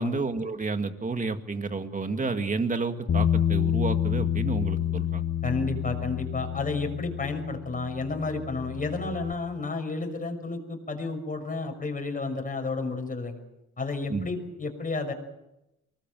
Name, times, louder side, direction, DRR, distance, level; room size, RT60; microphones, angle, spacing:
voice 1, 0.0-5.2 14.1-14.3, right 4 dB, 25° right, 7 dB, 2.1 m, -30 dB
Bass guitar, 3.1-9.3, left 9 dB, 45° left, 1.7 m, -28 dB
voice 2, 5.4-13.4 13.8-15.1, left 3 dB, 25° left, 4 dB, 6.0 m, -31 dB
24.0 x 19.5 x 7.8 m, 0.91 s
cardioid pair, 90°, 30 cm